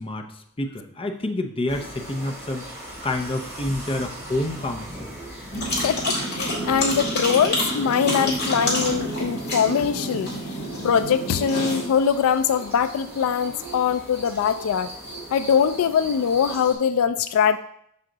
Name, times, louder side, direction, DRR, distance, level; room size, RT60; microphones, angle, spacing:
voice 1, 0.0-5.1, left 1 dB, 25° left, 5 dB, 0.6 m, -29 dB
sound 1, 1.7-16.7, equal, 10° right, 1.7 m, -40 dB
sound 2, 5.5-11.8, equal, 50° left, 2.2 m, -28 dB
sound 3, 5.5-7.9 8.3-12.3 12.8-15.2, right 2 dB, 50° right, 1.3 m, -44 dB
voice 2, 5.8-10.3 10.8-14.9 15.3-17.6, left 7 dB, 70° left, 12 dB, 0.3 m, -22 dB
6.1 x 5.7 x 3.8 m, 0.71 s
head